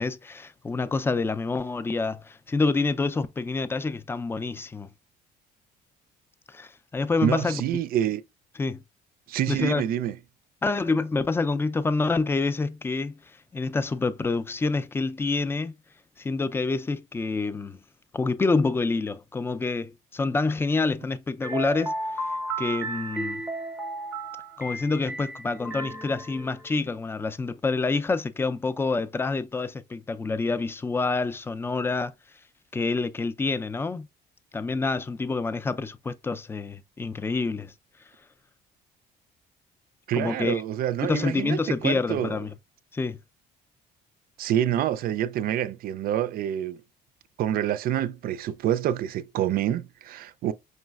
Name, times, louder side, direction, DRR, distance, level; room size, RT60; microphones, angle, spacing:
voice 1, 0.0-4.9 6.5-7.6 8.6-8.8 9.5-9.8 10.6-13.2 13.5-15.7 16.2-17.8 18.1-21.9 22.6-23.4 24.6-32.1 32.7-34.1 34.5-37.7 40.2-40.6 41.0-42.5 42.9-43.2, left 3 dB, 15° left, 0.3 m, -27 dB
voice 2, 7.2-8.2 9.3-10.2 40.1-42.4 44.4-46.8 47.4-50.5, right 11 dB, 60° right, 0.4 m, -27 dB
sound 1, 21.4-26.7, right 2 dB, 10° right, 0.7 m, -34 dB
5.3 x 3.1 x 2.3 m
cardioid pair, 110°, 17 cm